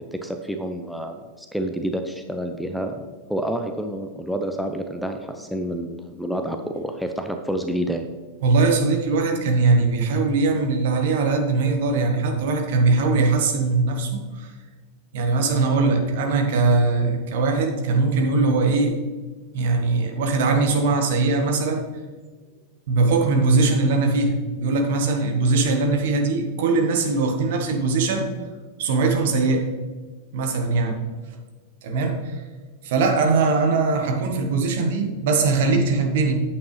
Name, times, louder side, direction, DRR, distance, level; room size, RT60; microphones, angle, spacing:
voice 1, 0.0-8.1, equal, ahead, 5 dB, 0.6 m, -29 dB
voice 2, 8.4-14.5 15.1-18.9 19.5-21.9 22.9-28.3 28.8-29.7 30.3-31.0 31.8-32.4 32.8-36.4, right 3 dB, 55° right, 3 dB, 1.4 m, -21 dB
9.1 x 8.1 x 3.3 m, 1.4 s
figure-of-eight pair, 90°, 0 cm